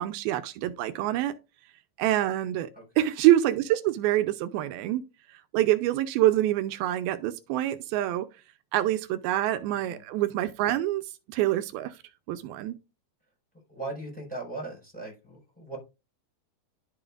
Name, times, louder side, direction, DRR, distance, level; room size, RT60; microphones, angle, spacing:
voice 1, 0.0-1.3 2.0-2.7 3.0-5.0 5.3-8.3 8.7-11.0 11.3-11.9 12.3-12.8, right 13 dB, 90° right, 2.5 m, -26 dB
voice 2, 13.7-15.8, right 2 dB, ahead, 5.4 m, -38 dB
11.5 x 7.0 x 2.5 m
omnidirectional pair, 4.3 m